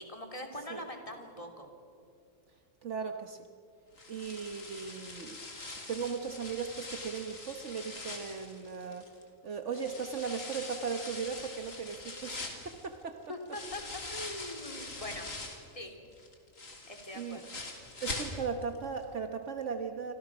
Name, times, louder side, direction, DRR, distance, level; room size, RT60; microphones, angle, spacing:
voice 1, 0.0-1.7 13.3-15.3 15.7-16.0 16.9-17.5, left 1 dB, 25° left, 3 dB, 3.2 m, -42 dB
voice 2, 2.8-3.5 4.1-5.4 5.9-9.1 9.4-13.2 17.1-17.4 18.0-20.1, right 6 dB, 65° right, 6 dB, 1.4 m, -37 dB
sound 1, 4.0-9.2 9.7-15.7 16.1-18.8 19.0-19.1 19.6-19.7, left 2 dB, 75° left, 3.4 m, -43 dB
29.0 x 26.0 x 6.1 m, 2.4 s
omnidirectional pair, 1.4 m